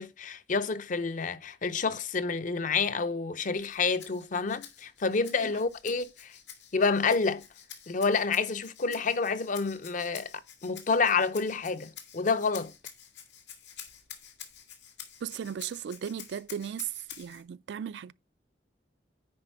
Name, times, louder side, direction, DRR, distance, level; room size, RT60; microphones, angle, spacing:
voice 1, 0.0-6.3 6.7-7.4 7.9-10.3 10.6-12.7, left 4 dB, 50° left, 0.6 m, -28 dB
Rattle (instrument), 3.6-17.4, left 9 dB, 85° left, 1.7 m, -49 dB
voice 2, 15.2-16.9 17.2-18.1, right 8 dB, 75° right, 0.3 m, -36 dB
9.7 x 4.3 x 4.5 m
head